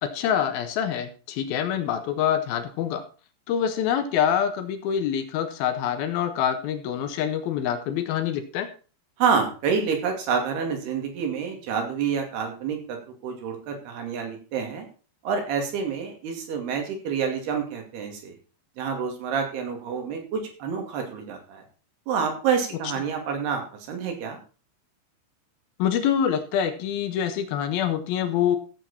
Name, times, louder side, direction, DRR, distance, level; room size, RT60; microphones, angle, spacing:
voice 1, 0.0-3.0 3.5-8.7 25.8-28.6, left 9 dB, 65° left, 8 dB, 2.8 m, -25 dB
voice 2, 9.2-13.0 13.2-14.9 15.2-18.4 18.8-21.6 22.1-23.6 23.9-24.4, right 6 dB, 65° right, 4 dB, 4.3 m, -28 dB
15.0 x 8.0 x 4.4 m, 0.37 s
omnidirectional pair, 5.1 m